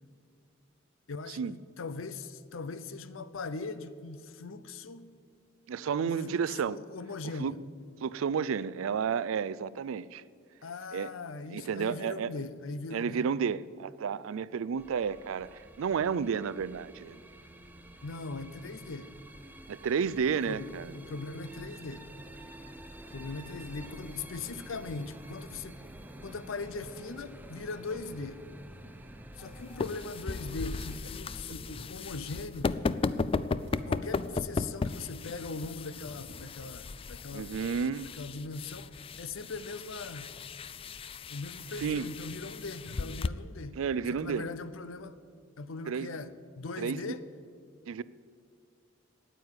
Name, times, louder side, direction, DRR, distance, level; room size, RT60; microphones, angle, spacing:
voice 1, 1.1-5.2 6.0-7.6 10.6-13.2 18.0-19.1 20.5-22.1 23.1-25.8 26.2-28.5 29.4-32.8 33.9-37.6 38.0-40.3 41.3-43.8 44.1-45.2 45.6-47.3, left 3 dB, 75° left, 0.6 m, -40 dB
voice 2, 5.7-6.8 7.4-7.5 8.0-10.2 10.9-11.1 11.5-12.3 12.9-17.2 19.7-20.9 37.3-38.1 41.8-42.1 43.7-44.5 45.9-46.1 46.8-47.2 47.9-48.0, right 6 dB, 80° right, 0.4 m, -31 dB
sound 1, 14.8-31.0, right 1 dB, 10° right, 0.8 m, -49 dB
sound 2, 29.3-43.3, left 4 dB, 25° left, 0.3 m, -36 dB
Whoosh swoosh swish, 30.7-31.2 31.5-32.0 32.4-32.9 33.2-33.3 33.6-33.8 34.1-36.4, right 2 dB, 60° right, 1.1 m, -54 dB
9.4 x 9.1 x 9.6 m
head